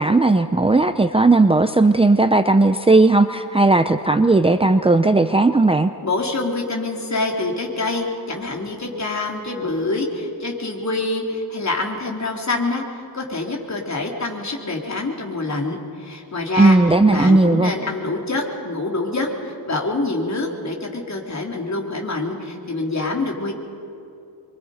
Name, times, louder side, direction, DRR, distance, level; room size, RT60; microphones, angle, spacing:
voice 1, 0.0-5.9 16.6-17.7, right 2 dB, 15° right, 8 dB, 0.6 m, -16 dB
voice 2, 6.0-23.5, left 2 dB, 40° left, 0 dB, 3.7 m, -26 dB
28.0 x 23.5 x 5.2 m, 2.6 s
wide cardioid pair, 95°, 42 cm